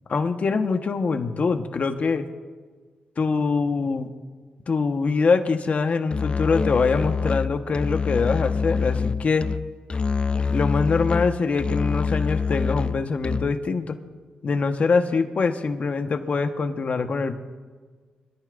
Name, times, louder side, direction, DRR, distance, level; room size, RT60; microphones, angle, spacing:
voice 1, 0.1-2.3 3.2-4.1 4.7-9.5 10.5-14.0 14.4-17.4, left 4 dB, 55° left, 6 dB, 1.3 m, -23 dB
Musical instrument, 6.1-13.7, left 5 dB, 35° left, 0.4 m, -26 dB
22.5 x 14.0 x 2.6 m, 1.5 s
cardioid pair, 60°, 3 cm